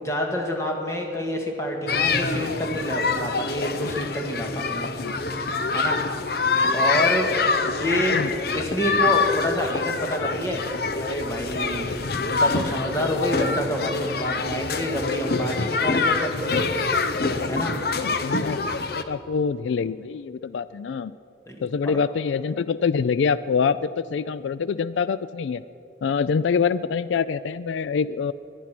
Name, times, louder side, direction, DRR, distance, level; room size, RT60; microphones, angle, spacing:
voice 1, 0.0-4.9 5.7-6.0 6.7-7.3 7.6-8.3 8.5-10.6 10.9-11.8 12.4-16.8 17.5-17.7 21.5-21.6 21.8-22.0, equal, 15° left, 1 dB, 1.8 m, -27 dB
sound 1, 1.9-19.0, left 4 dB, 55° left, 0.8 m, -25 dB
voice 2, 12.0-12.4 17.9-18.6 19.0-21.1 21.6-25.6 26.0-28.3, left 6 dB, 80° left, 16 dB, 0.3 m, -25 dB
21.0 x 11.0 x 6.0 m, 2.7 s
head